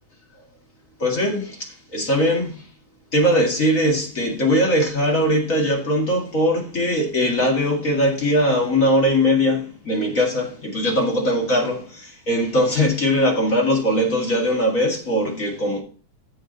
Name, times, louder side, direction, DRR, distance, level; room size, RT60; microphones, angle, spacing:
voice 1, 1.0-2.6 3.1-15.8, equal, 30° left, 2.1 m, -20 dB
15.0 x 5.0 x 3.9 m
omnidirectional pair, 3.4 m